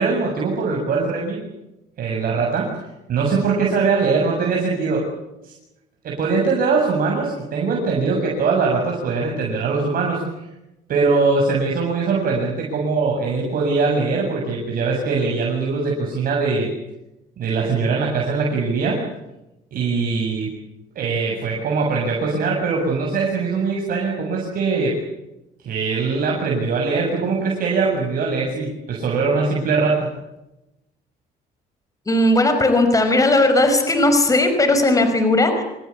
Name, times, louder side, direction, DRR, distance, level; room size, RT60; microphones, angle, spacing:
voice 1, 0.0-1.4 2.0-2.8 3.1-5.1 5.4-5.5 6.0-10.2 10.9-16.7 17.4-19.0 19.7-20.5 21.0-25.0 25.6-30.1, right 4 dB, 55° right, -1 dB, 7.7 m, -21 dB
voice 2, 32.1-35.6, left 2 dB, 20° left, 6 dB, 5.4 m, -17 dB
28.0 x 19.5 x 8.6 m, 0.92 s
cardioid pair, 110°, 17 cm